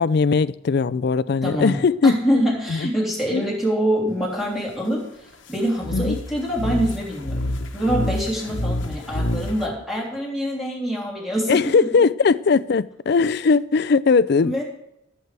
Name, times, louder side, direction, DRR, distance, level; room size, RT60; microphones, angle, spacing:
voice 1, 0.0-2.1 2.7-2.8 3.3-3.5 5.9-6.2 11.5-14.5, left 5 dB, 55° left, 0.4 m, -19 dB
voice 2, 1.4-11.7 14.4-14.6, equal, ahead, 3.1 m, -25 dB
sound 1, 5.8-9.7, left 1 dB, 70° left, 1.1 m, -27 dB
17.5 x 8.2 x 3.4 m
head